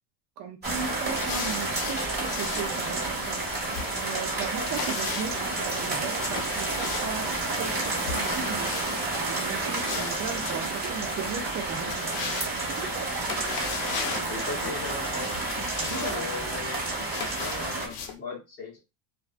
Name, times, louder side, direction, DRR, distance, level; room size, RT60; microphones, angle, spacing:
voice 1, 0.4-8.7 9.2-12.4 15.7-16.7, right 6 dB, 40° right, 0.5 m, -37 dB
sound 1, 0.6-18.2, left 5 dB, 65° left, 0.7 m, -39 dB
sound 2, 0.6-17.9, right 2 dB, 20° right, 1.4 m, -30 dB
sound 3, 5.0-14.1, right 8 dB, 80° right, 0.7 m, -41 dB
voice 2, 14.2-15.3 15.9-16.8 17.4-18.8, left 4 dB, 20° left, 0.7 m, -37 dB
2.4 x 2.3 x 2.4 m
cardioid pair, 135°, 47 cm